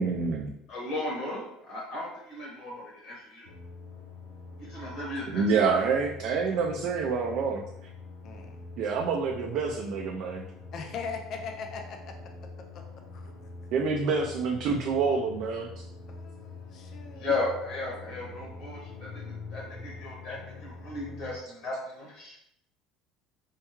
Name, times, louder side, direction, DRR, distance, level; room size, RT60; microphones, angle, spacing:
voice 1, 0.0-0.5 5.3-7.9 8.8-10.5 13.7-15.8, right 5 dB, 50° right, 1 dB, 0.4 m, -27 dB
voice 2, 0.7-3.5 4.6-5.9 17.2-22.4, left 2 dB, 65° left, -3 dB, 1.0 m, -36 dB
sound 1, 3.5-21.4, left 3 dB, 80° left, 0.6 m, -45 dB
voice 3, 8.2-8.6 10.7-12.1 12.7-12.8 13.1-13.3 16.1-17.3, left 5 dB, 40° left, 4 dB, 0.4 m, -40 dB
4.5 x 2.2 x 2.9 m, 0.75 s
cardioid pair, 165°, 0 cm